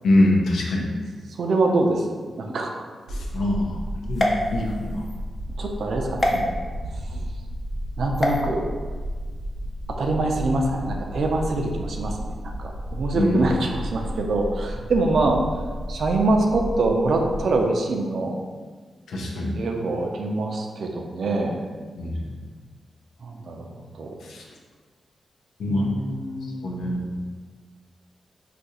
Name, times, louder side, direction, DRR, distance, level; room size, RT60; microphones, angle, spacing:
voice 1, 0.0-0.9 3.1-3.8 4.1-4.3 4.5-5.0 13.1-13.4 19.1-19.6 22.0-22.2 24.2-24.4 25.6-25.9 26.6-27.1, left 1 dB, 90° left, -1 dB, 0.6 m, -23 dB
voice 2, 1.4-2.8 5.6-6.5 7.1-7.2 8.0-8.6 9.9-12.3 12.6-15.4 15.9-18.4 19.5-21.6 23.2-24.1 25.7-26.9, right 2 dB, 60° right, 2 dB, 0.4 m, -25 dB
real heartbeat, 3.1-17.6, equal, 85° right, 0.8 m, -33 dB
sound 1, 4.1-5.2 6.2-6.4 8.1-8.4, left 1 dB, 30° left, 0.4 m, -25 dB
2.7 x 2.5 x 4.1 m, 1.5 s
wide cardioid pair, 145°, 0 cm